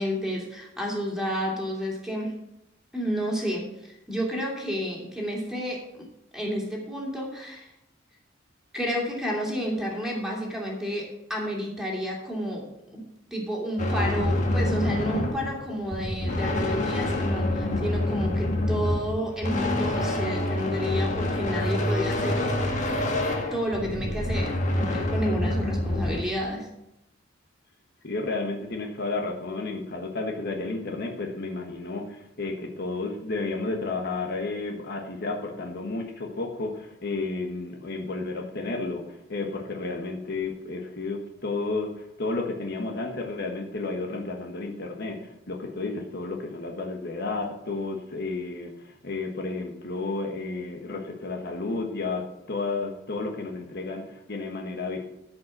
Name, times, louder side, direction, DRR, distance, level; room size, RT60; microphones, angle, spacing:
voice 1, 0.0-2.3 2.9-6.1 6.3-7.7 8.7-13.0 13.3-22.4 23.5-26.7, equal, 5° right, -2 dB, 2.8 m, -31 dB
sound 1, 13.8-26.2, left 1 dB, 40° left, 1.6 m, -27 dB
voice 2, 28.0-55.0, left 3 dB, 55° left, 2 dB, 1.4 m, -32 dB
13.0 x 5.5 x 6.0 m, 0.88 s
head